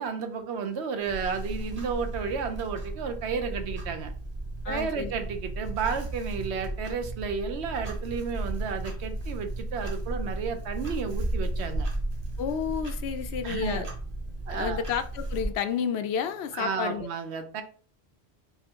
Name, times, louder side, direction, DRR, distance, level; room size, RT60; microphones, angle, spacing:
voice 1, 0.0-4.1 4.7-11.9 13.4-13.9 14.5-14.8 16.5-17.6, right 5 dB, 85° right, 1.0 m, -32 dB
Clock, 1.0-15.5, right 1 dB, 40° right, 1.0 m, -34 dB
voice 2, 4.6-5.1 12.4-13.9 14.5-17.1, left 8 dB, 80° left, 0.8 m, -31 dB
4.0 x 2.5 x 4.4 m
omnidirectional pair, 1.1 m